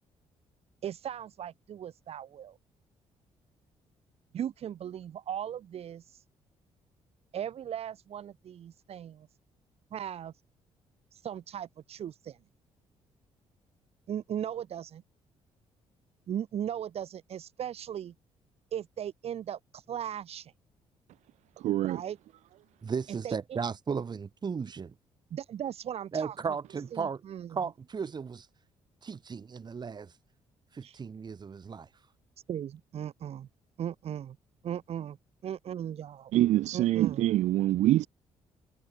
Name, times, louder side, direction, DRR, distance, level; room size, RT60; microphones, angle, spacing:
voice 1, 0.8-2.6 4.3-6.2 7.3-9.3 9.9-10.3 11.1-12.4 14.1-15.0 16.3-18.1 18.7-20.5 21.8-22.2 23.2-23.4 25.3-26.3 26.9-27.5 30.8-31.0 32.5-33.5 33.8-34.4 34.6-35.2 35.4-36.3 36.7-37.3, right 9 dB, 60° right, 2.8 m, -37 dB
voice 2, 21.6-22.0 36.3-38.1, right 14 dB, 85° right, 1.7 m, -25 dB
voice 3, 22.8-24.9 26.1-27.2 27.5-28.5 29.0-30.1 30.7-31.9, right 6 dB, 40° right, 5.4 m, -35 dB
cardioid pair, 105°, 12 cm